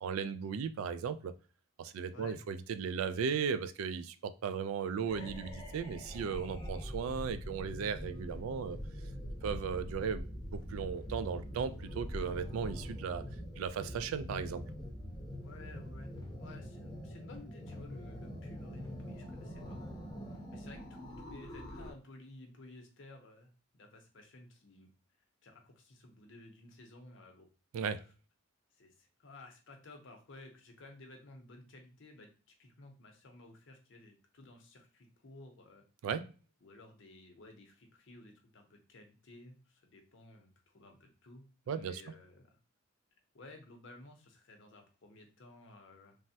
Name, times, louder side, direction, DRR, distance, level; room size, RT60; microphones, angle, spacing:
voice 1, 0.0-1.3 1.8-8.8 9.4-13.3 13.6-14.6 27.7-28.0 36.0-36.3 41.7-42.0, right 6 dB, 85° right, 12 dB, 0.3 m, -36 dB
sound 1, 5.0-21.9, equal, 20° left, 0.6 m, -44 dB
voice 2, 15.4-20.2 20.5-24.9 25.4-27.5 28.7-32.3 32.6-35.8 36.6-42.6 43.3-46.2, left 2 dB, 60° left, 4 dB, 0.7 m, -55 dB
3.3 x 2.1 x 2.7 m, 0.34 s
head